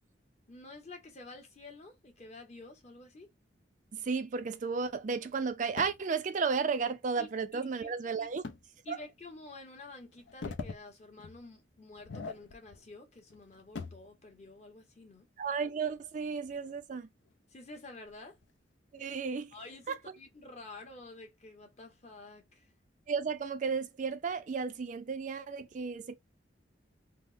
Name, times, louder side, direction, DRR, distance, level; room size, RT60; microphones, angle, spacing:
voice 1, 0.5-3.3 7.2-7.9 8.2-8.3 8.8-15.3 17.5-18.4 19.5-22.7, left 2 dB, 40° left, 1.0 m, -50 dB
voice 2, 3.9-8.4 8.9-9.0 15.4-17.1 18.9-19.5 19.9-20.0 23.1-26.2, right 5 dB, 45° right, 0.4 m, -33 dB
sound 1, 5.8-6.1 8.4-8.6 9.2-9.3 10.1-10.8 11.2-11.4 11.9-12.8 13.2-14.1 15.7-16.8 17.3-17.4 18.1-18.4, left 4 dB, 80° left, 0.5 m, -43 dB
3.4 x 2.0 x 2.5 m
head